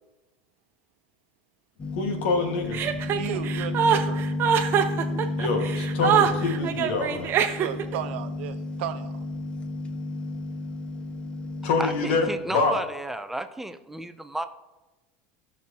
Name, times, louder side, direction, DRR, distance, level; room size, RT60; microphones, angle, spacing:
everything should be recorded. hypnoise, 1.8-12.4, left 2 dB, 20° left, 1.1 m, -32 dB
voice 1, 1.9-2.9 5.4-7.3 11.6-12.8, left 4 dB, 75° left, 4 dB, 1.6 m, -26 dB
Chuckle chortle, 2.7-8.0, right 8 dB, 40° right, 0.8 m, -24 dB
voice 2, 3.0-4.2 7.6-9.1, right 10 dB, 85° right, 10 dB, 0.8 m, -34 dB
voice 3, 11.8-14.5, right 1 dB, 5° right, 9 dB, 0.4 m, -33 dB
16.0 x 6.1 x 2.8 m, 1.1 s
supercardioid pair, 135°, 6 cm